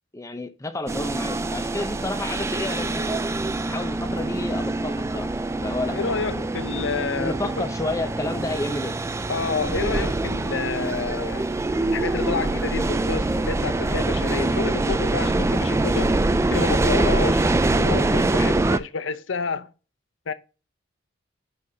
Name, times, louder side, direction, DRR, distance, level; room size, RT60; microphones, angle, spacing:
voice 1, 0.1-3.3 3.7-6.5 7.2-9.0, left 2 dB, 15° left, 0.7 m, -31 dB
sound 1, 0.9-18.8, right 2 dB, 15° right, 0.3 m, -24 dB
voice 2, 5.9-7.6 9.3-11.5 11.9-16.2 16.5-17.4 17.8-19.7 20.3-20.4, left 5 dB, 65° left, 0.6 m, -29 dB
11.5 x 4.1 x 2.8 m
head